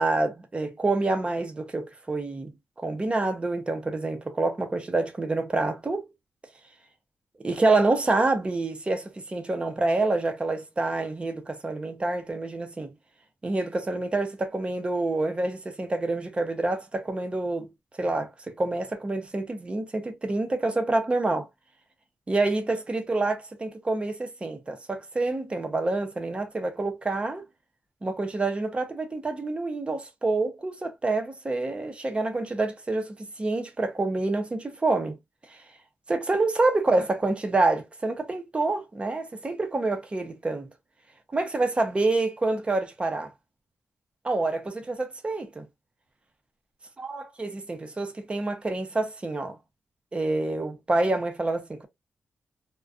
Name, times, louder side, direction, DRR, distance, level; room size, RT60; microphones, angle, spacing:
voice 1, 0.0-2.5 2.8-6.0 7.4-12.9 13.4-17.7 18.0-21.5 22.3-27.5 28.0-35.2 35.5-35.6 36.1-40.7 41.3-43.3 44.2-45.6 47.0-49.6 50.1-51.9, right 2 dB, 25° right, 0.6 m, -27 dB
2.4 x 2.2 x 2.3 m
cardioid pair, 105°, 4 cm